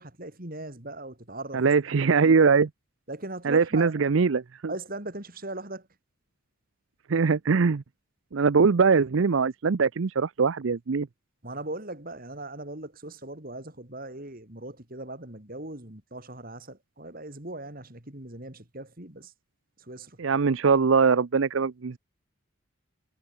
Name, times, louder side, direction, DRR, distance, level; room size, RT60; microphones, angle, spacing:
voice 1, 0.0-2.6 3.1-4.1 4.7-5.9 11.4-19.3 19.8-20.2, right 2 dB, 45° right, 3.2 m, -39 dB
voice 2, 1.5-2.7 3.4-4.7 7.1-7.8 8.3-11.1 20.2-22.0, right 5 dB, 65° right, 0.5 m, -22 dB
head